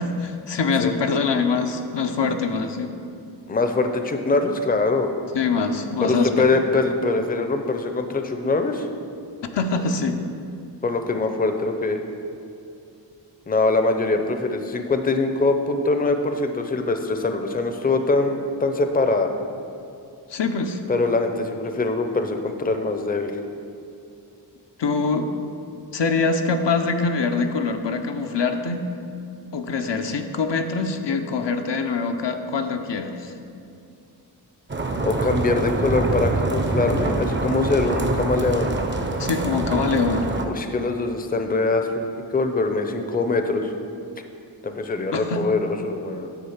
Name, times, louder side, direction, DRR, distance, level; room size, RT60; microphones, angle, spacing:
voice 1, 0.0-2.9 5.3-6.5 9.5-10.2 20.3-20.8 24.8-25.3 25.9-28.9 29.5-33.3 39.2-40.3 45.1-45.4, left 4 dB, 75° left, 5 dB, 0.6 m, -24 dB
voice 2, 3.5-5.1 6.0-8.9 10.8-12.0 13.5-19.3 20.9-23.4 35.0-38.7 40.5-42.1 42.3-43.7 44.6-46.4, left 3 dB, 20° left, 6 dB, 0.5 m, -23 dB
sound 1, 34.7-40.5, right 2 dB, 25° right, 0.6 m, -25 dB
9.8 x 3.6 x 7.1 m, 2.5 s
wide cardioid pair, 100°, 43 cm